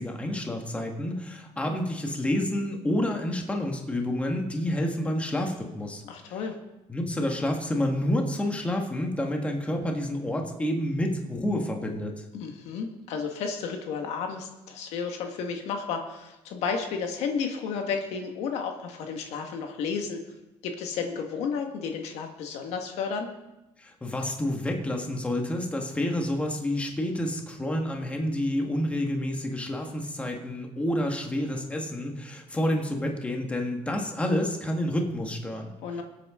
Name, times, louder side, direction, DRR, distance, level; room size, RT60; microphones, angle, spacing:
voice 1, 0.0-6.0 6.3-6.4 6.9-12.2 23.8-35.7, left 1 dB, 10° left, 2 dB, 1.6 m, -29 dB
voice 2, 6.0-6.6 12.3-20.2 20.6-23.3 35.8-36.0, left 5 dB, 75° left, 4 dB, 1.6 m, -32 dB
23.0 x 8.5 x 3.7 m, 0.98 s
cardioid pair, 140°, 11 cm